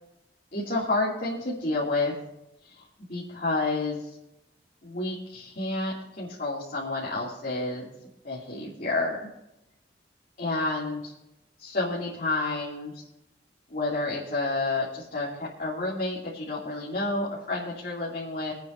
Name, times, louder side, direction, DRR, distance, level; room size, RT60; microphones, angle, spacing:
voice 1, 0.5-2.1 2.6-4.2 4.8-7.9 8.2-9.3 10.4-11.1 11.6-13.1 13.7-18.5, left 2 dB, 50° left, -5 dB, 2.6 m, -30 dB
25.5 x 9.1 x 2.6 m, 0.88 s
head